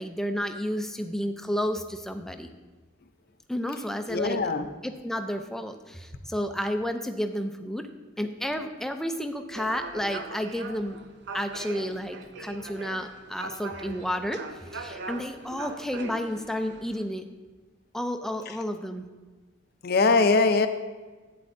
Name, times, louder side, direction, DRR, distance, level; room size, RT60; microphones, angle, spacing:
voice 1, 0.0-2.5 3.5-4.4 4.8-7.9 8.2-11.0 11.3-14.4 14.7-17.3 17.9-19.1, equal, ahead, 7 dB, 0.4 m, -31 dB
voice 2, 4.1-4.7 19.8-20.7, left 3 dB, 50° left, 8 dB, 0.5 m, -21 dB
sound 1, 9.5-17.1, right 3 dB, 60° right, 0.6 m, -41 dB
11.5 x 8.6 x 2.6 m, 1.3 s
head